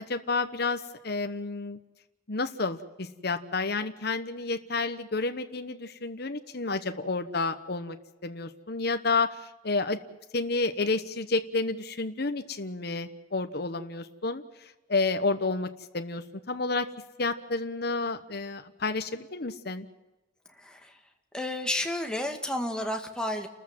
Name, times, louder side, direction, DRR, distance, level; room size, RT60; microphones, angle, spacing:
voice 1, 0.0-1.8 2.3-8.0 8.2-10.0 10.3-14.4 14.9-15.7 15.9-16.9 17.2-19.9, left 3 dB, 55° left, 8 dB, 1.1 m, -30 dB
voice 2, 20.6-20.9 21.3-23.5, left 1 dB, 5° left, 3 dB, 2.0 m, -31 dB
29.5 x 14.0 x 7.6 m, 1.1 s
head